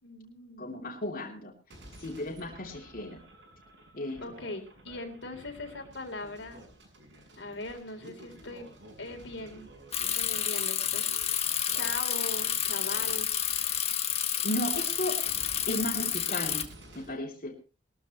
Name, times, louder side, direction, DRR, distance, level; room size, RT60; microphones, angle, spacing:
voice 1, 0.0-0.7 4.2-6.6 7.4-9.7 10.1-11.0 11.7-13.3, left 2 dB, 80° left, 5 dB, 3.6 m, -40 dB
voice 2, 0.6-1.5 2.0-3.2 3.9-4.2 14.4-15.2 15.7-16.7 16.9-17.6, left 1 dB, 50° left, -1 dB, 3.1 m, -34 dB
sound 1, 1.7-17.1, right 1 dB, 80° right, 7.7 m, -52 dB
Bicycle, 9.9-16.6, left 9 dB, 35° left, 1.6 m, -30 dB
21.5 x 13.5 x 3.1 m, 0.32 s
head